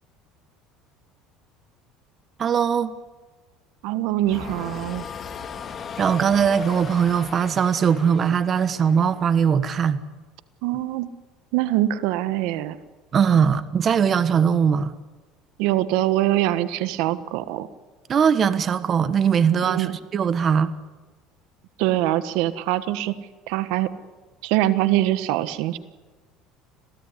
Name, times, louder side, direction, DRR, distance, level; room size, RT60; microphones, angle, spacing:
voice 1, 2.4-2.9 6.0-10.0 13.1-14.9 18.1-19.9 20.1-20.7, right 7 dB, 35° right, 1.3 m, -20 dB
voice 2, 3.8-5.1 10.6-11.1 11.5-12.8 15.6-17.7 19.6-20.0 21.8-23.1 23.5-23.9 24.4-25.8, right 14 dB, 75° right, 1.4 m, -23 dB
sound 1, 4.2-9.4, left 6 dB, 35° left, 1.9 m, -38 dB
27.0 x 17.0 x 9.9 m
supercardioid pair, 115°, 0 cm